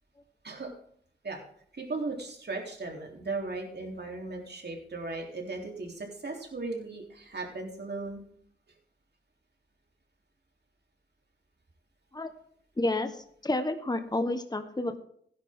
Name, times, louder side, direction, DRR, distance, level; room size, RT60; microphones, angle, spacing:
voice 1, 1.7-8.2, right 3 dB, 65° right, 1 dB, 3.5 m, -37 dB
voice 2, 12.8-15.0, left 2 dB, 20° left, 8 dB, 1.3 m, -30 dB
16.5 x 10.5 x 3.7 m, 0.64 s
wide cardioid pair, 80°, 19 cm